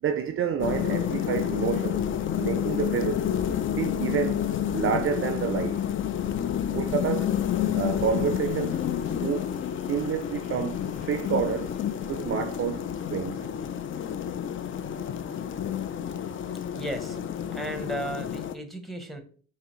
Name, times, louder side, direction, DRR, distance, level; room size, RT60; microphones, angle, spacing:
voice 1, 0.0-2.0 2.3-3.3 3.8-4.5 4.7-5.8 6.7-7.3 7.7-8.8 9.1-9.5 9.9-11.7 12.1-13.5, right 7 dB, 45° right, 0.4 m, -29 dB
sound 1, 0.6-18.5, left 9 dB, 45° left, 0.4 m, -29 dB
sound 2, 5.8-13.9, left 4 dB, 20° left, 1.1 m, -50 dB
voice 2, 16.8-17.2 17.5-19.2, right 1 dB, ahead, 0.9 m, -35 dB
5.8 x 2.8 x 3.0 m
cardioid pair, 90°, 30 cm